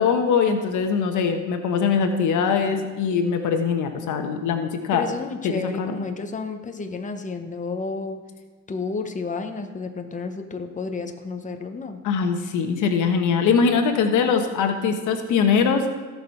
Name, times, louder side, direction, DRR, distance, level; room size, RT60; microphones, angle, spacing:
voice 1, 0.0-5.0 5.4-6.0 12.0-15.8, left 6 dB, 80° left, 6 dB, 1.2 m, -22 dB
voice 2, 4.9-8.2 8.7-12.0, left 4 dB, 25° left, 6 dB, 1.0 m, -31 dB
17.0 x 6.0 x 4.6 m, 1.3 s
cardioid pair, 90°, 30 cm